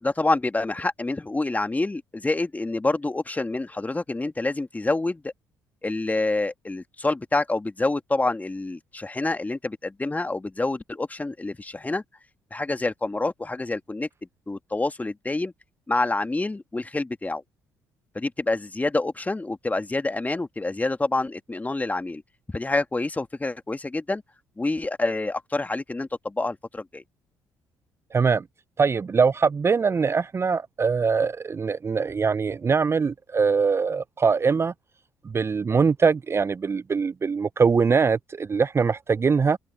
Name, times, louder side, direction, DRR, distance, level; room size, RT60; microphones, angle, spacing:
voice 1, 0.0-5.3 5.8-12.0 12.5-14.1 14.5-15.5 15.9-17.4 18.1-22.2 22.5-24.2 24.6-27.0, left 2 dB, 20° left, 2.0 m, -27 dB
voice 2, 28.1-28.4 28.8-34.7 35.2-39.6, right 5 dB, 30° right, 0.6 m, -22 dB
hypercardioid pair, 50°, 9 cm